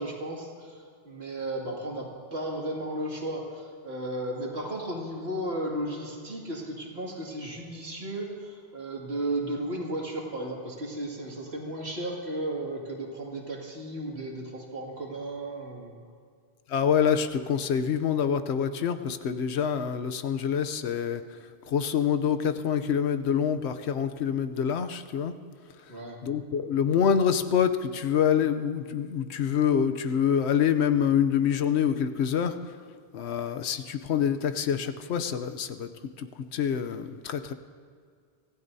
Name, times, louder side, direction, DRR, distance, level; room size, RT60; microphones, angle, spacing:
voice 1, 0.0-15.9 25.9-26.2, right 1 dB, 70° right, -2 dB, 2.6 m, -34 dB
voice 2, 16.7-21.2 21.7-25.3 26.2-32.6 33.1-35.9 36.2-37.5, left 8 dB, 85° left, 9 dB, 1.0 m, -26 dB
25.0 x 15.5 x 2.7 m, 2.1 s
omnidirectional pair, 1.1 m